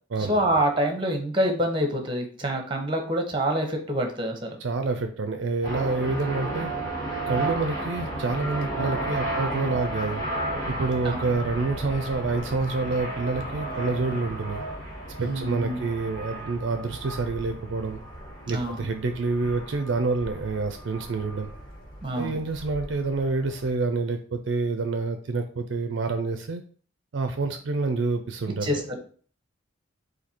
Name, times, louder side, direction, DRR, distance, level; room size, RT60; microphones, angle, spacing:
voice 1, 0.2-4.5 11.0-11.2 15.2-15.8 18.5-18.9 22.0-22.4 28.6-29.0, right 1 dB, 25° right, 3 dB, 0.8 m, -26 dB
voice 2, 4.6-6.7 7.3-10.2 10.7-14.6 15.2-18.0 18.5-21.5 22.2-26.6 27.1-28.8, right 3 dB, 65° right, 6 dB, 0.4 m, -27 dB
sound 1, 5.6-23.7, right 1 dB, 20° left, 1.4 m, -34 dB
4.1 x 2.7 x 4.1 m, 0.42 s
head